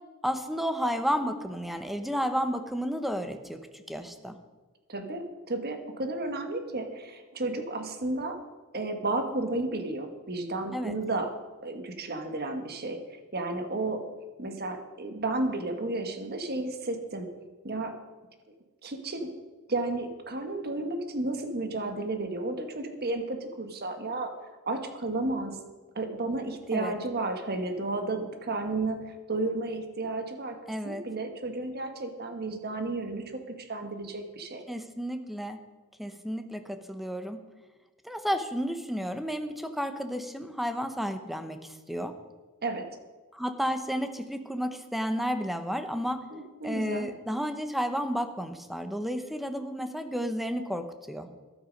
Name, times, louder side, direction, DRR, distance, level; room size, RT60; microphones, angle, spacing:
voice 1, 0.2-4.4 10.7-11.0 26.7-26.9 30.7-31.0 34.7-35.6 36.0-37.4 38.0-42.1 43.3-46.2 46.6-51.3, equal, ahead, 8 dB, 0.9 m, -32 dB
voice 2, 4.9-8.4 8.7-11.3 11.6-13.0 13.3-14.1 14.4-17.3 17.6-18.0 18.8-19.3 19.7-24.3 24.7-25.6 25.9-30.6 30.8-33.3 33.6-34.6 42.6-42.9 46.3-47.1, right 2 dB, 45° right, 6 dB, 1.5 m, -32 dB
13.5 x 12.0 x 5.3 m, 1.3 s
head